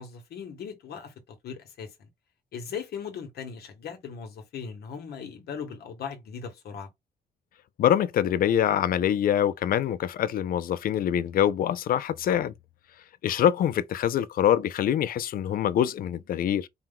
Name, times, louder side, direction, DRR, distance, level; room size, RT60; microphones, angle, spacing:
voice 1, 0.0-2.1 2.5-6.9, left 6 dB, 80° left, 1.1 m, -39 dB
voice 2, 7.8-12.5 13.2-16.7, left 10 dB, 65° left, 0.4 m, -24 dB
4.4 x 2.2 x 3.6 m
wide cardioid pair, 145°, 16 cm